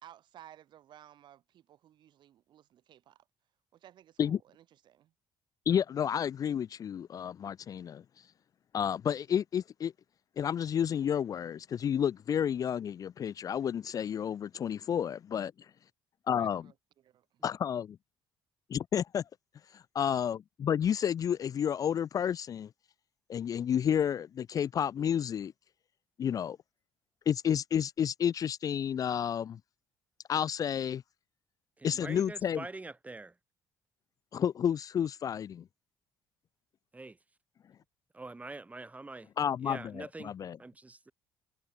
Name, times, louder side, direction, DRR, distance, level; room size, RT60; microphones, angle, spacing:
voice 1, 0.0-3.3 3.7-5.1 16.4-17.4, right 11 dB, 65° right, 3.1 m, -57 dB
voice 2, 5.7-8.0 8.7-9.9 10.4-15.5 16.3-16.7 17.4-17.9 18.7-19.2 19.7-22.7 23.3-25.5 26.2-26.6 27.3-29.6 30.3-31.0 31.8-32.7 34.3-35.6 39.4-40.6, left 8 dB, 45° left, 0.4 m, -31 dB
voice 3, 31.8-33.3 36.9-37.2 38.1-39.3 39.6-40.3 40.6-41.1, right 3 dB, 15° right, 2.4 m, -44 dB
cardioid pair, 85°, 8 cm